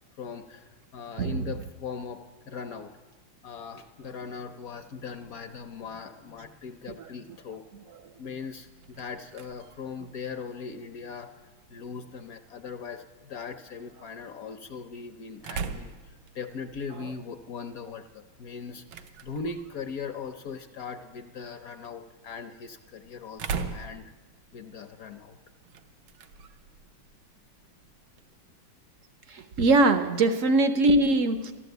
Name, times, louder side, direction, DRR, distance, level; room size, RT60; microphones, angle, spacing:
voice 1, 0.2-2.9 3.4-7.6 8.2-11.3 11.7-24.0 24.5-25.4, left 5 dB, 65° left, 8 dB, 0.9 m, -39 dB
voice 2, 1.2-1.6 7.0-7.1 17.0-17.1 29.3-31.5, right 2 dB, 65° right, 9 dB, 0.7 m, -22 dB
sound 1, 8.5-28.4, right 5 dB, 90° right, 1.7 m, -43 dB
14.0 x 12.0 x 7.9 m, 1.3 s
omnidirectional pair, 2.1 m